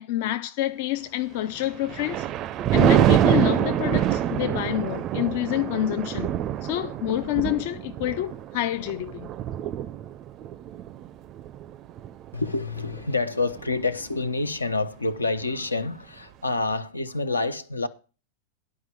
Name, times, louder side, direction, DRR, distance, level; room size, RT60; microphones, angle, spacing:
voice 1, 0.0-2.3 2.7-9.3, left 14 dB, 50° left, 0.4 m, -28 dB
Thunder, 1.6-13.1 13.5-13.8, right 11 dB, 35° right, 0.4 m, -25 dB
voice 2, 12.3-17.9, left 3 dB, 80° left, 0.8 m, -27 dB
11.0 x 4.8 x 7.6 m
figure-of-eight pair, 90°, 0 cm